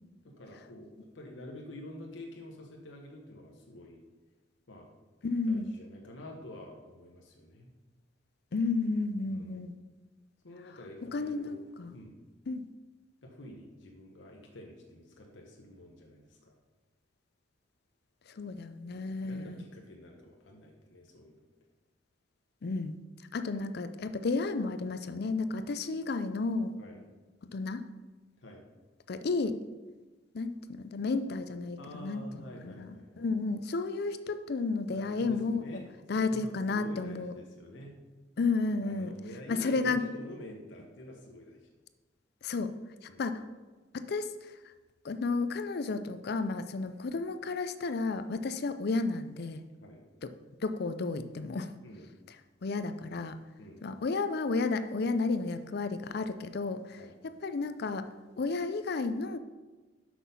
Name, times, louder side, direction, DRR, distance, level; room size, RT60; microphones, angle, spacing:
voice 1, 0.4-4.0 4.7-4.9 5.4-7.7 9.3-9.7 10.4-11.6 11.9-12.2 13.2-16.6 19.2-21.3 26.8-27.0 28.4-28.6 31.8-33.3 34.9-35.9 36.1-37.9 38.8-41.7 43.1-43.2 49.8-50.0 51.8-52.1 53.6-53.8 57.0-57.2, left 1 dB, 85° left, 0 dB, 1.1 m, -48 dB
voice 2, 5.2-5.7 8.5-9.7 11.0-11.9 12.5-12.7 18.3-19.6 22.6-23.0 23.3-26.8 27.5-27.8 29.1-29.6 30.3-35.6 36.1-37.3 38.4-39.1 39.5-40.0 42.4-42.7 43.0-43.4 43.9-44.5 45.0-49.6 50.2-50.3 50.6-51.7 52.6-53.4 53.8-57.0 57.4-58.1 58.4-59.4, left 3 dB, 60° left, 10 dB, 0.5 m, -32 dB
6.2 x 6.0 x 5.4 m, 1.2 s
head